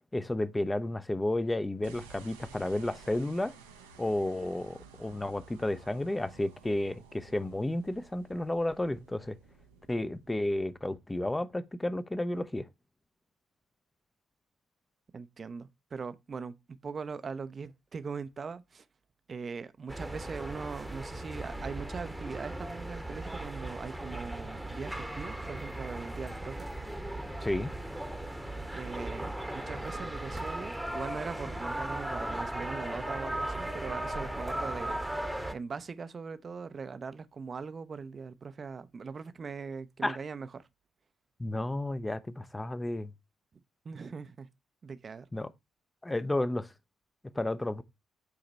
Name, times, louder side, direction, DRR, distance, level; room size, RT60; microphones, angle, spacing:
voice 1, 0.1-3.6 4.0-9.4 9.9-12.7 27.4-27.7 40.0-40.2 41.4-43.1 45.3-45.5 46.0-46.7 47.3-47.8, left 1 dB, 15° left, 0.6 m, -32 dB
sound 1, 1.8-11.2, right 6 dB, 85° right, 0.6 m, -54 dB
voice 2, 15.1-18.9 19.3-26.7 28.7-40.7 43.8-44.5 44.8-45.3, right 5 dB, 40° right, 0.5 m, -41 dB
sound 2, 19.9-35.5, right 1 dB, 5° right, 1.0 m, -37 dB
8.1 x 2.9 x 4.0 m
figure-of-eight pair, 40°, 0 cm